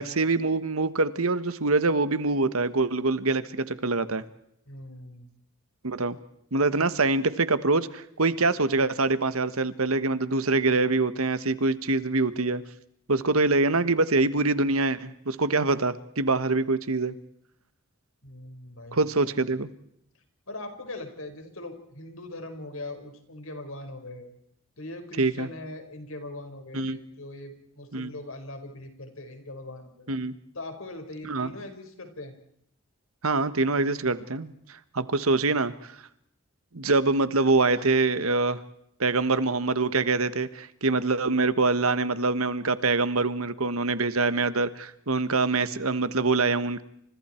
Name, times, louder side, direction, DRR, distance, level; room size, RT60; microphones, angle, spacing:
voice 1, 0.0-4.2 5.8-6.2 6.5-12.6 13.1-17.1 18.9-19.7 25.2-25.5 26.7-27.0 27.9-28.1 30.1-30.3 31.3-31.5 33.2-36.0 36.7-38.6 39.0-46.8, right 3 dB, 80° right, 13 dB, 1.4 m, -25 dB
voice 2, 4.7-5.3 18.2-19.4 20.5-24.3 24.8-30.1 30.5-32.3, left 2 dB, 70° left, 6 dB, 5.3 m, -41 dB
30.0 x 27.0 x 4.5 m, 0.73 s
head